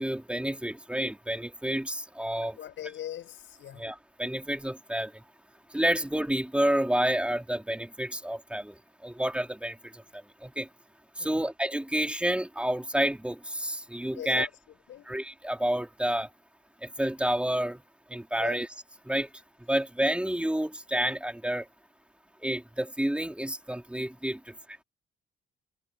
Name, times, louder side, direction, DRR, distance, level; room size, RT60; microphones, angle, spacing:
voice 1, 0.0-2.6 3.7-5.2 5.7-10.7 11.2-14.5 15.1-16.3 16.8-17.8 18.1-18.7 19.0-19.3 19.7-21.7 22.4-24.5, right 1 dB, 5° right, 3.7 m, -29 dB
voice 2, 2.4-3.9 11.2-11.5 14.1-15.2 18.3-18.6, left 11 dB, 75° left, 7.3 m, -41 dB
cardioid pair, 90°, 20 cm